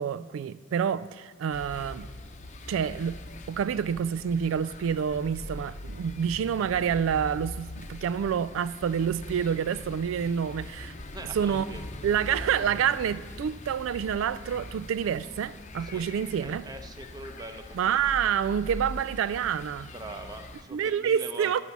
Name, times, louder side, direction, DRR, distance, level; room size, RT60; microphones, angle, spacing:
voice 1, 0.0-2.1 2.7-3.2 3.5-10.9 11.3-11.7 12.0-16.7 17.7-19.9 20.7-21.6, right 8 dB, 85° right, 0.3 m, -28 dB
sound 1, 1.5-20.6, left 1 dB, 35° left, 0.7 m, -42 dB
voice 2, 11.1-11.8 15.8-16.1 16.4-18.0 19.9-21.6, right 2 dB, 20° right, 0.8 m, -42 dB
12.0 x 5.4 x 7.1 m
head